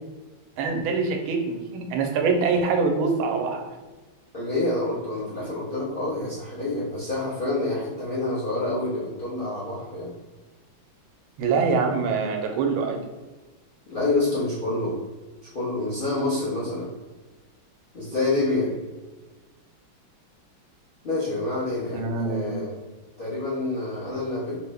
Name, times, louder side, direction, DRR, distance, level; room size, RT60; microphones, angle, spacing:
voice 1, 0.6-3.7 11.4-13.0 21.9-22.5, right 4 dB, 85° right, 3 dB, 1.4 m, -24 dB
voice 2, 4.3-10.1 13.9-15.0 15.4-16.9 17.9-18.7 21.0-22.8 23.2-24.6, left 2 dB, 75° left, -9 dB, 0.4 m, -27 dB
3.5 x 2.0 x 3.3 m, 1.2 s
omnidirectional pair, 2.2 m